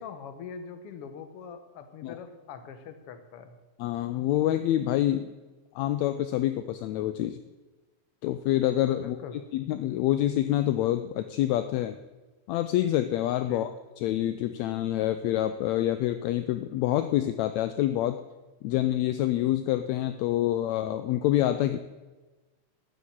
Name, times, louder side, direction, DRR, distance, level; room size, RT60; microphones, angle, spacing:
voice 1, 0.0-3.5 8.9-9.4 13.4-13.6, left 6 dB, 60° left, 8 dB, 1.7 m, -42 dB
voice 2, 3.8-5.3 5.7-7.4 8.2-9.2 9.5-12.0 12.5-13.7 14.0-18.2 18.6-21.8, left 13 dB, 80° left, 10 dB, 1.6 m, -26 dB
12.5 x 7.4 x 8.6 m, 1.2 s
omnidirectional pair, 3.7 m